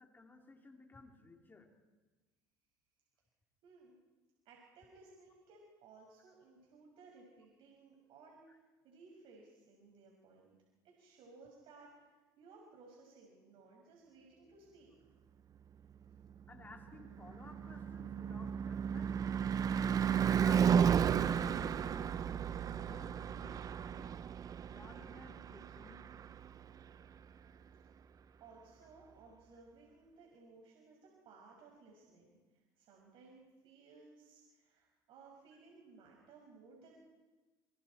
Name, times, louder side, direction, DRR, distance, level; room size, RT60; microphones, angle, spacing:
voice 1, 0.0-1.7 8.5-8.6 16.5-19.2 19.9-21.1 21.3-24.2 24.7-26.0 35.5-35.6, left 3 dB, 20° left, 3 dB, 3.1 m, -56 dB
voice 2, 3.6-4.0 4.4-10.6 10.8-15.1 28.4-36.9, right 3 dB, 60° right, -1 dB, 5.8 m, -60 dB
Car passing by / Truck / Engine, 16.6-26.8, right 8 dB, 35° right, 0.8 m, -33 dB
26.5 x 24.5 x 4.4 m, 1.3 s
supercardioid pair, 95°, 10 cm